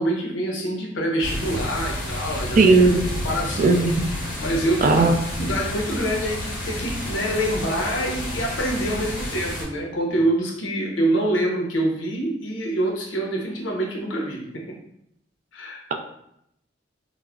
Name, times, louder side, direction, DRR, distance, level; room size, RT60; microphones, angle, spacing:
voice 1, 0.0-2.8 3.2-3.8 4.4-5.0 5.3-14.8 15.5-15.8, right 1 dB, 85° left, 0 dB, 0.7 m, -25 dB
sound 1, 1.2-9.6, left 1 dB, 50° left, 1.0 m, -30 dB
voice 2, 2.6-3.1 3.6-4.1 4.8-5.2, right 3 dB, 45° right, 4 dB, 0.3 m, -16 dB
2.3 x 2.0 x 3.5 m, 0.76 s
head